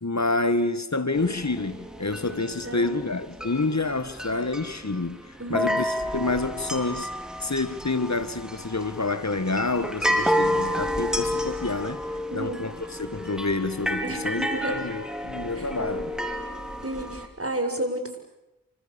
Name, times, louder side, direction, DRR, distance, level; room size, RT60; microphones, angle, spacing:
voice 1, 0.0-5.2 5.5-7.1 7.4-12.0 12.3-16.2, left 3 dB, 50° left, 2.0 m, -28 dB
sound 1, 1.1-17.3, equal, ahead, 4.8 m, -31 dB
voice 2, 2.6-2.9 5.4-5.8 12.3-12.7 14.0-14.8 15.6-15.7 16.8-18.2, right 1 dB, 40° right, 7.3 m, -32 dB
28.5 x 26.5 x 7.3 m
wide cardioid pair, 40°, 35 cm